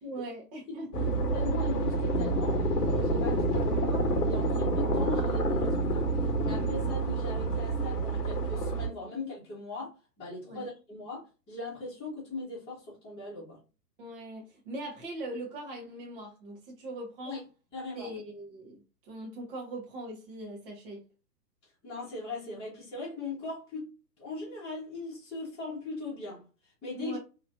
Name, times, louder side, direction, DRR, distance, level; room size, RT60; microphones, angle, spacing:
voice 1, 0.0-1.2 10.4-10.7 14.0-17.4 17.9-21.0 26.9-27.2, right 1 dB, 35° right, 1.2 m, -41 dB
sound 1, 0.9-8.9, right 2 dB, 70° left, 0.9 m, -28 dB
voice 2, 1.3-6.1 6.4-13.6 17.2-17.4 17.7-18.1 21.8-23.9 24.2-27.2, left 2 dB, 10° left, 1.2 m, -40 dB
3.1 x 3.0 x 2.5 m
figure-of-eight pair, 120°, 49 cm